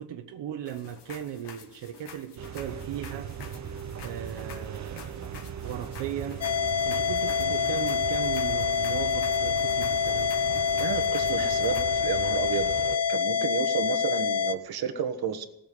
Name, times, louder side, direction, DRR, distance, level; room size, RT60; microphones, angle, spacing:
voice 1, 0.0-3.3 4.0-6.5 6.8-10.3, right 9 dB, 80° right, 1.1 m, -37 dB
sound 1, 0.7-11.8, left 6 dB, 75° left, 2.3 m, -49 dB
sound 2, 2.4-13.0, right 8 dB, 40° right, 0.8 m, -38 dB
sound 3, 6.4-14.5, left 7 dB, 40° left, 0.6 m, -26 dB
voice 2, 10.8-15.5, right 7 dB, 60° right, 1.4 m, -32 dB
18.0 x 7.2 x 9.4 m
wide cardioid pair, 180°, 42 cm